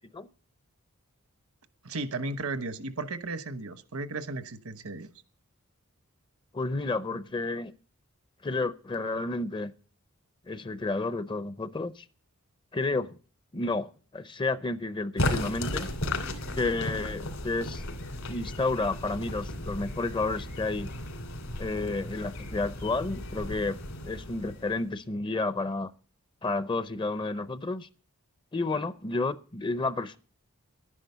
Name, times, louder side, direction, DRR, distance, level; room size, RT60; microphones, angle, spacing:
voice 1, 1.8-5.1, right 3 dB, 75° right, 1.1 m, -35 dB
voice 2, 6.5-7.7 8.4-9.7 10.5-12.0 12.7-13.2 13.5-15.9 16.5-17.9 18.3-20.9 21.6-23.8 24.0-25.9 26.4-27.9 28.5-30.2, left 3 dB, 20° left, 0.5 m, -31 dB
sound 1, 15.2-25.0, left 1 dB, 70° left, 2.7 m, -35 dB
11.0 x 10.0 x 6.8 m
head